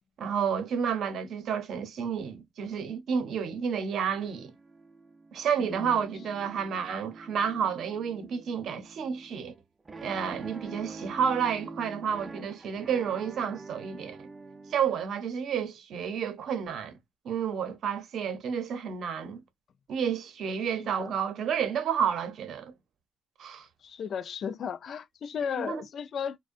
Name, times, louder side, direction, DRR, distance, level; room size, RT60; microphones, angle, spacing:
voice 1, 0.2-4.5 5.3-9.5 10.0-14.3 14.7-16.9 17.2-19.4 19.9-22.7 23.4-23.7 25.5-25.8, right 7 dB, 70° right, 0.6 m, -30 dB
sound 1, 4.0-14.8, right 3 dB, 25° right, 0.4 m, -46 dB
voice 2, 5.6-6.0 21.0-21.2 23.8-26.4, left 7 dB, 60° left, 0.3 m, -35 dB
2.4 x 2.1 x 2.5 m
cardioid pair, 90°, 0 cm